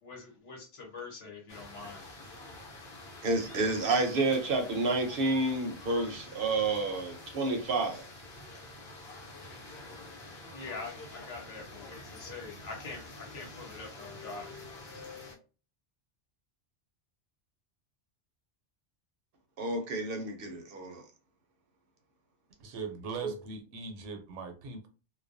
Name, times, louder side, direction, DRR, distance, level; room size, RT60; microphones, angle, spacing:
voice 1, 0.0-2.1 10.5-14.6, left 3 dB, 90° left, 0 dB, 1.3 m, -44 dB
sound 1, 1.5-15.4, left 2 dB, 65° left, 0.9 m, -47 dB
voice 2, 3.2-8.1 19.6-21.0 23.2-23.3, right 2 dB, 60° right, 4 dB, 0.7 m, -30 dB
voice 3, 22.6-24.9, right 4 dB, 85° right, 6 dB, 0.9 m, -40 dB
2.3 x 2.2 x 2.5 m, 0.33 s
omnidirectional pair, 1.2 m